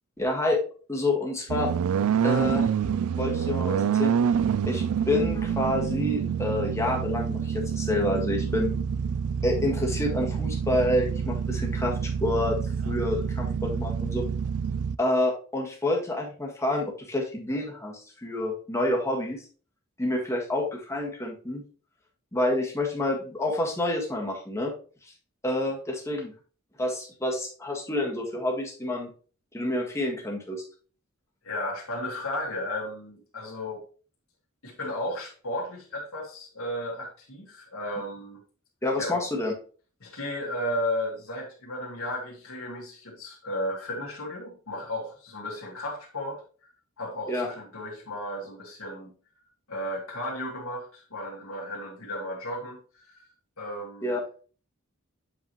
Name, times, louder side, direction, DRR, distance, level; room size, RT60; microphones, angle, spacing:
voice 1, 0.2-0.6 0.9-1.7 2.2-2.7 3.2-4.1 4.7-8.7 9.4-12.6 12.8-14.3 15.0-19.4 20.0-21.6 22.3-24.7 25.4-26.3 26.8-29.1 29.5-30.6 38.8-39.5 47.3-47.5 54.0-54.2, left 1 dB, 15° left, -1 dB, 1.7 m, -28 dB
sound 1, 1.5-15.0, right 7 dB, 85° right, 0.4 m, -27 dB
voice 2, 31.4-33.9 34.6-38.4 39.0-39.2 40.0-46.4 47.0-49.1 49.7-53.3 53.6-54.2, left 1 dB, 75° left, -2 dB, 2.0 m, -34 dB
7.8 x 4.9 x 3.1 m, 0.39 s
head